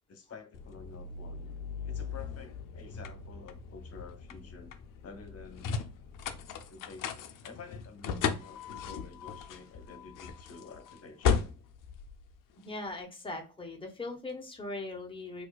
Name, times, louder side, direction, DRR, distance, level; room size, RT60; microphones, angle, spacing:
voice 1, 0.1-1.5 1.8-4.8 5.0-5.8 6.7-11.6, left 4 dB, 45° left, 0.9 m, -50 dB
sound 1, 0.5-12.9, left 6 dB, 75° left, 0.6 m, -37 dB
voice 2, 12.6-15.5, left 2 dB, 15° left, 1.0 m, -40 dB
4.3 x 2.6 x 2.3 m
cardioid pair, 125°, 32 cm